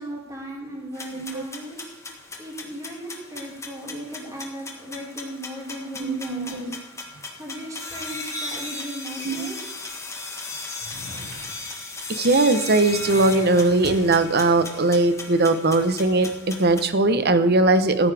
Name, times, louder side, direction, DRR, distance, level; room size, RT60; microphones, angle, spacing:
voice 1, 0.0-1.9 2.4-6.8 7.4-9.6, equal, 15° right, -4 dB, 4.9 m, -37 dB
sound 1, 0.9-16.8, left 3 dB, 15° left, 1.4 m, -36 dB
voice 2, 6.0-6.8 9.2-9.5 12.1-18.1, right 2 dB, 50° right, 10 dB, 1.0 m, -20 dB
sound 2, 10.8-11.7 12.8-14.2, equal, 75° right, 5.2 m, -42 dB
15.0 x 13.5 x 3.5 m, 0.93 s
head